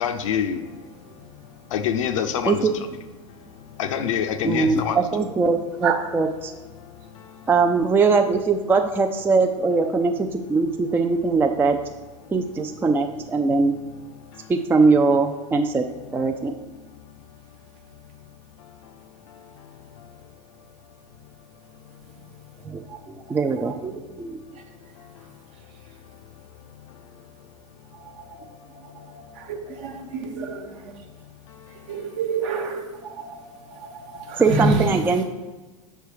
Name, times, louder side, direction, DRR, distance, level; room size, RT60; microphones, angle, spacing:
voice 1, 0.0-2.7 3.3-5.0 6.8-7.5 12.2-12.3 14.1-14.5 14.9-15.0 16.3-16.4 16.8-18.0 19.1-20.7 22.3-22.9 24.5-27.9 29.0-29.5 31.2-32.0, left 8 dB, 70° left, 8 dB, 0.6 m, -32 dB
voice 2, 1.0-1.7 2.6-2.9 3.2-3.8 4.6-4.8 5.8-6.0 6.8-7.5 12.2-12.3 14.3-14.4 22.1-22.2 22.9-23.7 24.5-26.0 27.9-31.1 31.5-35.2, right 3 dB, 60° right, 2 dB, 1.2 m, -31 dB
voice 3, 4.4-6.5 7.5-11.9 12.3-13.8 14.5-16.5 22.6-24.4 34.4-35.2, right 4 dB, 10° right, 5 dB, 0.3 m, -21 dB
6.5 x 3.4 x 4.6 m, 1.2 s
hypercardioid pair, 85°, 17 cm